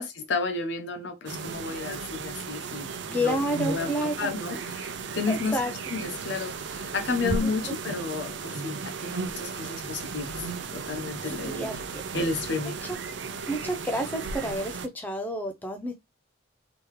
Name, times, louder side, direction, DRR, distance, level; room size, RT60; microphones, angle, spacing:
voice 1, 0.0-5.6 5.9-11.7 12.1-12.8, left 4 dB, 60° left, 0.8 m, -32 dB
sound 1, 1.3-14.9, right 4 dB, 60° right, 0.5 m, -35 dB
voice 2, 3.1-4.3 5.3-5.7 7.4-7.5 11.4-12.0 12.9-13.0 13.5-15.9, equal, 10° left, 0.5 m, -29 dB
3.7 x 3.0 x 3.1 m
head